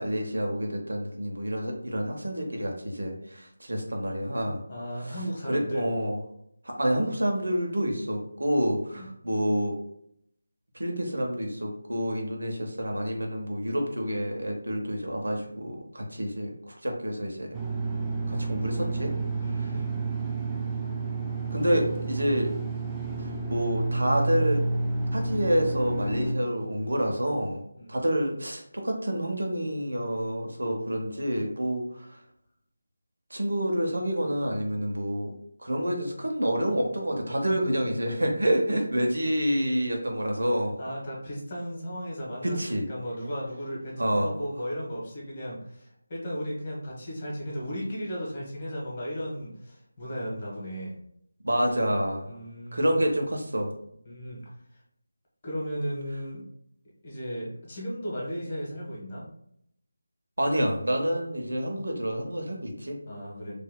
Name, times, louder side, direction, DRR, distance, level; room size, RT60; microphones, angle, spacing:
voice 1, 0.0-4.6 5.4-6.2 6.6-9.7 10.7-17.5 18.3-19.1 21.5-22.5 23.2-24.6 25.1-27.6 27.9-32.2 33.3-35.3 35.6-40.8 42.4-42.9 44.0-44.3 51.4-52.3 52.7-53.7 60.4-63.0, equal, 75° right, 2 dB, 0.9 m, -28 dB
voice 2, 4.7-5.9 8.9-9.1 19.4-20.0 27.8-28.0 40.8-50.9 52.2-52.9 54.0-54.4 54.7-54.8 55.4-56.4 57.0-59.3 63.1-63.6, equal, 35° left, -4 dB, 1.3 m, -35 dB
sound 1, 17.5-26.3, right 3 dB, 5° right, 0.4 m, -30 dB
4.5 x 2.7 x 2.2 m, 0.71 s
figure-of-eight pair, 160°, 0 cm